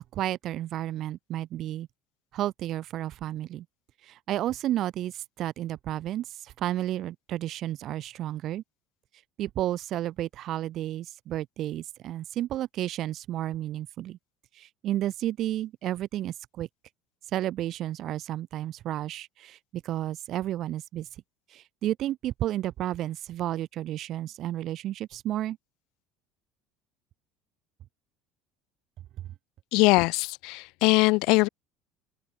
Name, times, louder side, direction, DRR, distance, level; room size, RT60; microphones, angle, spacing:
voice 1, 0.1-1.9 2.3-3.7 4.0-8.6 9.4-14.2 14.6-16.7 17.3-21.1 21.5-25.6, right 13 dB, 50° right, 1.8 m, -32 dB
voice 2, 29.7-31.5, left 26 dB, 70° left, 0.3 m, -22 dB
open air
cardioid pair, 140°, 0 cm